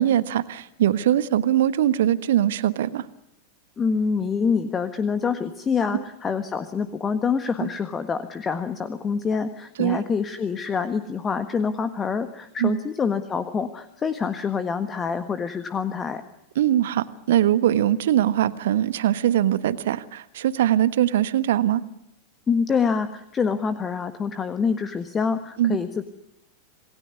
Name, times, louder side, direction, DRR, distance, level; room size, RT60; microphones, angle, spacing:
voice 1, 0.0-3.0 5.9-6.0 7.6-7.7 9.8-10.0 12.6-12.8 16.6-21.8 25.6-25.8, right 11 dB, 60° right, 15 dB, 1.3 m, -21 dB
voice 2, 3.8-16.2 22.5-26.0, left 5 dB, 20° left, 10 dB, 1.5 m, -26 dB
27.5 x 20.0 x 9.7 m, 0.81 s
figure-of-eight pair, 90°, 0 cm